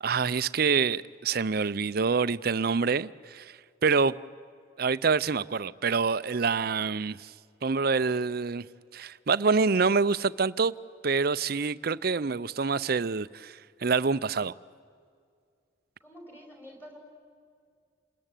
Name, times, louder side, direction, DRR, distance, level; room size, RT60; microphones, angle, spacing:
voice 1, 0.0-4.1 4.8-7.3 7.6-8.6 8.9-10.7 11.0-14.5, right 5 dB, 50° right, 0.6 m, -26 dB
voice 2, 16.0-17.0, equal, 10° left, 5.2 m, -48 dB
28.5 x 20.5 x 9.1 m
head